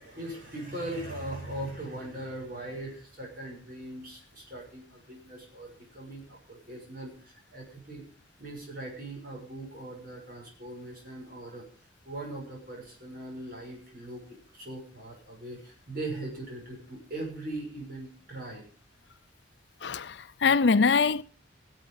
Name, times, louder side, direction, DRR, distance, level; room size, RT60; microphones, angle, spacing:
voice 1, 0.0-8.0 8.4-11.7 12.0-18.7, right 1 dB, 50° right, 6.2 m, -40 dB
voice 2, 19.8-21.2, left 5 dB, 60° left, 0.5 m, -23 dB
17.5 x 8.2 x 5.5 m
head